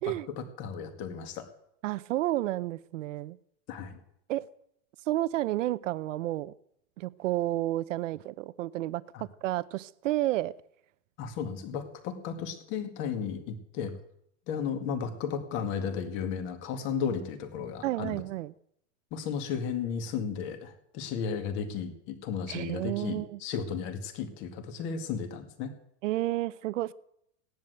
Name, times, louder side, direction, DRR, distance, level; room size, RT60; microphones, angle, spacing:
voice 1, 0.1-1.5 3.7-4.0 9.1-9.2 11.2-13.9 14.5-18.2 19.1-25.7, left 6 dB, 30° left, 7 dB, 2.0 m, -34 dB
voice 2, 1.8-3.4 4.3-4.5 5.1-6.5 7.0-10.5 17.8-18.5 22.5-23.4 26.0-26.9, right 15 dB, 85° right, 17 dB, 0.8 m, -31 dB
17.0 x 10.5 x 8.0 m, 0.74 s
supercardioid pair, 180°, 37 cm